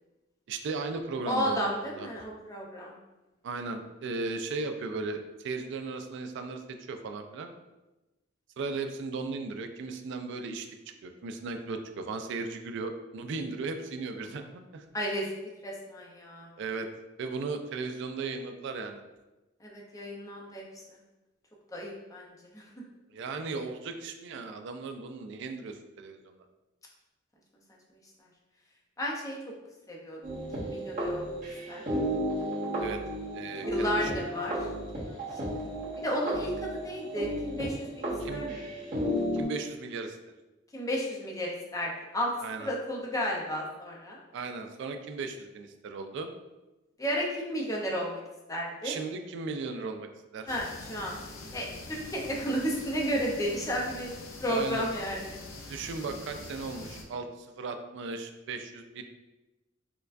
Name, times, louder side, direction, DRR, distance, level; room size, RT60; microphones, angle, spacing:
voice 1, 0.5-2.1 3.4-7.5 8.6-10.7 11.0-14.8 16.6-16.9 17.2-19.0 23.1-26.3 32.8-33.0 33.3-34.1 38.2-38.5 39.3-40.2 42.4-42.7 44.3-46.3 48.8-50.5 54.5-54.9 55.7-59.0, right 4 dB, 65° right, 6 dB, 0.3 m, -36 dB
voice 2, 1.3-3.0 14.9-16.5 19.6-20.6 20.9-21.0 21.7-22.6 29.0-29.4 29.9-30.2 30.6-31.4 31.7-31.8 33.7-34.7 34.9-35.3 36.0-38.7 40.7-42.3 42.6-44.2 47.0-48.2 48.5-49.0 50.5-51.1 51.5-54.1 54.4-55.4, equal, 15° left, -2 dB, 0.6 m, -33 dB
sound 1, 30.2-39.4, equal, 45° right, 1.3 m, -33 dB
sound 2, 50.5-57.0, left 2 dB, 90° left, 0.5 m, -44 dB
4.5 x 2.2 x 2.5 m, 1.1 s
head